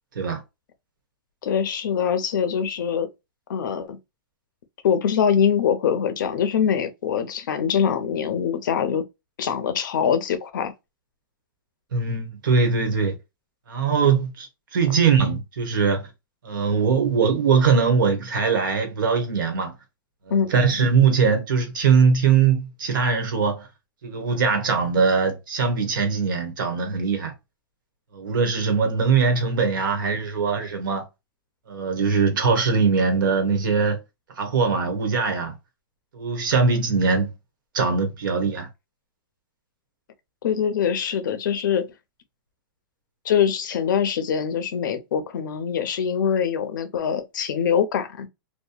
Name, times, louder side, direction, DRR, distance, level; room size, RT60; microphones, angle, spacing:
voice 1, 1.4-3.1 3.5-4.0 4.8-9.0 9.4-10.7 20.3-20.8 40.4-41.9 43.2-48.3, left 7 dB, 60° left, 0.6 m, -23 dB
voice 2, 11.9-13.1 13.7-14.5 14.7-16.1 16.4-19.7 20.3-23.7 24.0-27.3 28.1-31.0 31.7-34.0 34.4-35.6 36.1-37.3 37.7-38.7, right 5 dB, 65° right, 1.1 m, -21 dB
2.8 x 2.2 x 2.3 m
supercardioid pair, 180°, 12 cm